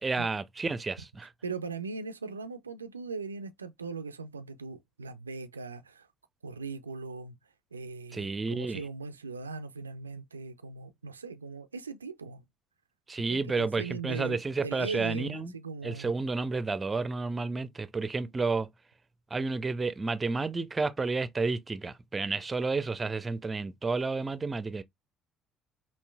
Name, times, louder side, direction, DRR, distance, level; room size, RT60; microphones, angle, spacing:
voice 1, 0.0-1.3 8.1-8.8 13.1-15.5 15.8-18.7 19.3-24.8, right 3 dB, 25° right, 0.5 m, -31 dB
voice 2, 1.4-6.1 6.4-7.4 7.7-12.4 13.3-16.1, right 4 dB, 90° right, 0.3 m, -39 dB
5.3 x 2.5 x 2.2 m
figure-of-eight pair, 55°, 0 cm